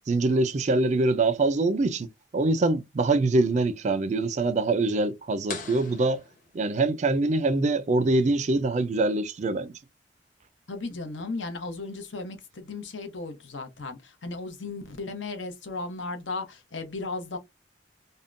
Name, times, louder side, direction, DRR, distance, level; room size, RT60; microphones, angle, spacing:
voice 1, 0.1-2.1 2.3-6.2 6.5-9.7, right 2 dB, 40° right, 0.3 m, -24 dB
sound 1, 5.5-7.2, left 5 dB, 45° left, 0.8 m, -41 dB
voice 2, 10.7-17.4, left 3 dB, 80° left, 0.8 m, -35 dB
3.5 x 2.1 x 2.5 m
head